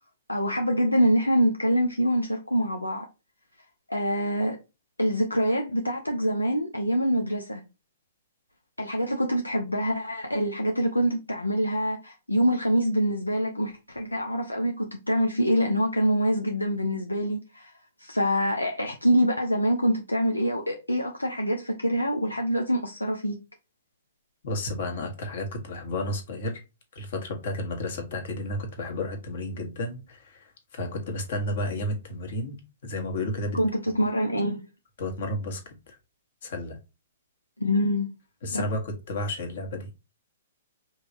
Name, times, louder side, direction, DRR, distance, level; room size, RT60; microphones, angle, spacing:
voice 1, 0.3-3.0 3.9-4.6 5.0-7.6 8.8-17.7 18.0-23.4 33.5-34.6 37.6-38.1 38.5-38.6, equal, 85° left, 0.7 m, -25 dB
voice 2, 24.4-26.6 26.9-33.6 35.0-36.0 36.4-36.8 38.4-39.9, left 1 dB, 55° left, 1.5 m, -32 dB
5.3 x 3.2 x 2.6 m
figure-of-eight pair, 115°, 0 cm